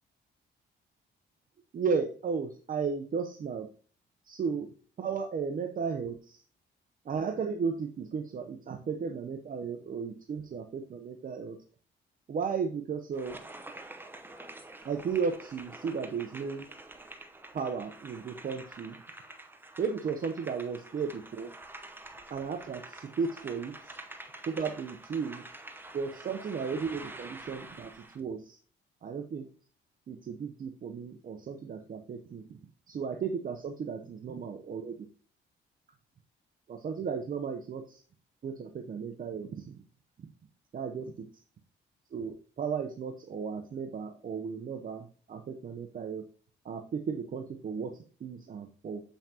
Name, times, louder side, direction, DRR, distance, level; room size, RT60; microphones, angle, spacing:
voice 1, 1.7-3.7 4.3-4.7 5.0-6.4 7.1-11.6 12.3-13.4 14.8-16.6 17.5-18.9 19.8-21.5 22.3-23.9 24.5-25.4 25.9-28.6 29.0-29.5 30.1-32.6 32.9-35.1 36.7-38.0 38.4-39.7 40.7-41.3 42.1-46.2 46.6-49.0, right 5 dB, 45° right, 5 dB, 0.8 m, -35 dB
sound 1, 13.1-28.2, right 2 dB, 10° right, 0.9 m, -47 dB
7.3 x 5.7 x 2.8 m, 0.40 s
cardioid pair, 90°, 20 cm